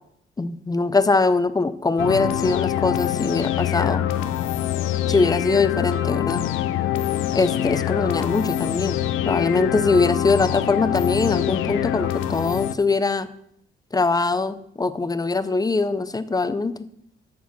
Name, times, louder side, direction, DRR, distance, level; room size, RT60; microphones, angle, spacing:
voice 1, 0.4-4.1 5.1-6.4 7.3-9.0 9.3-13.3 13.9-16.7, left 3 dB, 20° left, 13 dB, 0.7 m, -22 dB
sound 1, 2.0-12.7, left 11 dB, 85° left, 0.6 m, -24 dB
13.5 x 4.7 x 5.7 m, 0.71 s
cardioid pair, 90°, 20 cm